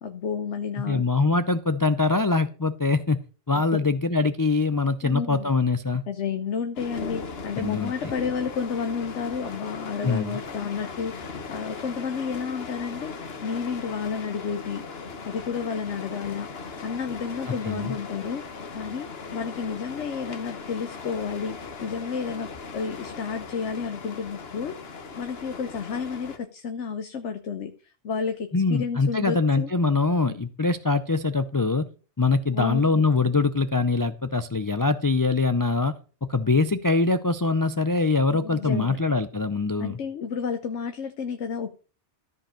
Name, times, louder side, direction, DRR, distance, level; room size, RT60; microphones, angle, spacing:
voice 1, 0.0-1.0 3.6-3.8 5.0-5.5 6.1-11.1 11.5-13.1 13.4-14.8 15.3-24.8 25.2-27.7 28.0-29.7 30.3-30.4 32.5-33.0 38.3-39.0 39.8-41.7, left 6 dB, 85° left, 8 dB, 1.2 m, -31 dB
voice 2, 0.9-3.2 3.5-6.0 7.6-8.1 10.0-10.4 17.5-17.9 28.5-31.9 32.2-36.0 36.2-40.0, left 3 dB, 30° left, 11 dB, 0.4 m, -23 dB
sound 1, 6.8-26.4, left 4 dB, 60° left, 1.4 m, -38 dB
13.5 x 5.1 x 6.5 m, 0.37 s
omnidirectional pair, 1.2 m